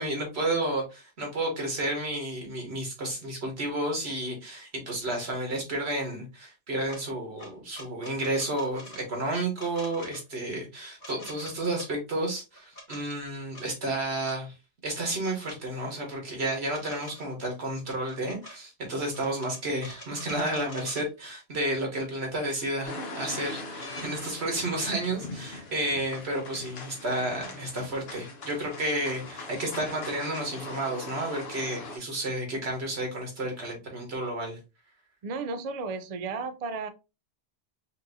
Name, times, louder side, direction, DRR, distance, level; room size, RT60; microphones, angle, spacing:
voice 1, 0.0-14.5 14.8-34.6, right 1 dB, 90° right, 1 dB, 1.8 m, -31 dB
sound 1, 6.9-7.0 7.4-9.0 9.5-10.2 11.0-11.9 12.5-13.0 13.5-13.7 14.2-14.4 15.4-15.6 16.5-17.3 17.8-18.6 19.1-21.1 22.1-22.2 22.6-23.1 23.8-24.1 25.6-25.8, left 1 dB, 50° left, 1.4 m, -46 dB
sound 2, 22.8-32.0, left 2 dB, 70° left, 1.2 m, -41 dB
voice 2, 35.2-36.9, right 4 dB, 50° right, 10 dB, 0.5 m, -33 dB
5.3 x 2.7 x 2.6 m, 0.27 s
omnidirectional pair, 1.1 m